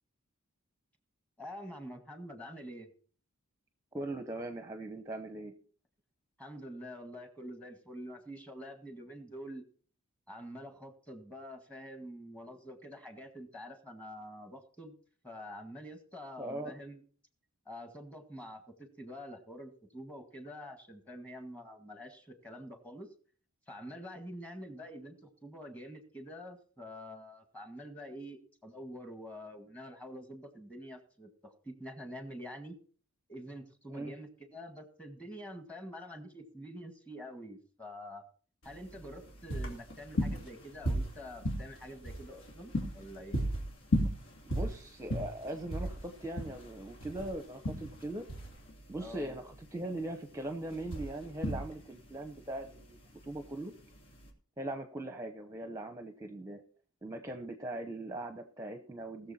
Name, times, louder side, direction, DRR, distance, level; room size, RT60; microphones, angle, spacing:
voice 1, 1.4-2.9 6.4-9.6 10.3-15.0 15.2-17.0 17.7-23.1 23.7-32.8 33.3-38.2 38.6-43.4 49.0-49.4, equal, 5° left, 7 dB, 1.8 m, -46 dB
voice 2, 3.9-5.5 16.4-16.7 33.9-34.1 44.4-48.2 48.9-53.7 54.6-56.6 57.0-59.3, right 1 dB, 15° right, 7 dB, 0.9 m, -40 dB
sound 1, 38.6-54.3, equal, 65° left, 3.0 m, -36 dB
19.5 x 7.0 x 4.3 m, 0.43 s
head